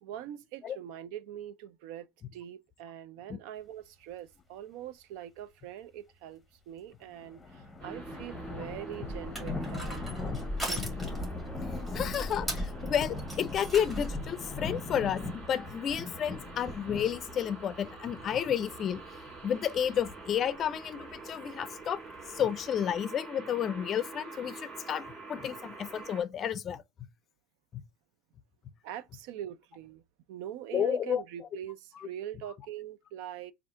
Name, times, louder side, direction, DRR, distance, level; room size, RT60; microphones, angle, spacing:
voice 1, 0.0-2.1 2.3-10.0 10.5-10.8 28.8-30.0 30.3-33.5, right 11 dB, 75° right, 0.4 m, -43 dB
sound 1, 7.0-23.0, left 3 dB, 10° left, 0.9 m, -41 dB
sound 2, 7.8-26.2, right 3 dB, 45° right, 2.0 m, -47 dB
Crushing, 9.1-14.3, equal, 15° right, 1.8 m, -38 dB
voice 2, 11.9-19.0 19.4-22.0 22.3-26.8 27.7-27.8 30.7-31.2 32.0-32.1, left 9 dB, 35° left, 0.4 m, -31 dB
3.6 x 2.5 x 4.3 m
cardioid pair, 140°, 0 cm